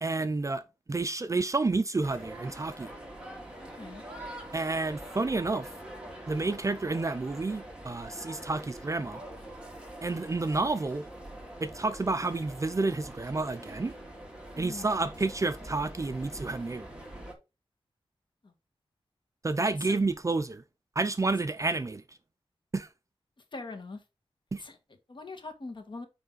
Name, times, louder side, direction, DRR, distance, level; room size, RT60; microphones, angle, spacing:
voice 1, 0.0-0.6 0.9-2.9 4.5-5.7 6.3-9.2 10.0-11.1 11.6-13.9 14.6-16.9 19.4-20.6 21.0-22.2 22.7-22.9 24.5-24.6, right 3 dB, 30° right, 0.5 m, -30 dB
sound 1, 2.0-17.3, right 1 dB, 10° right, 2.3 m, -44 dB
voice 2, 14.5-14.9 18.4-18.5 19.6-20.0 23.5-24.0 24.6-24.8 25.1-26.1, left 3 dB, 50° left, 1.7 m, -42 dB
9.3 x 3.3 x 4.0 m
wide cardioid pair, 95°, 10 cm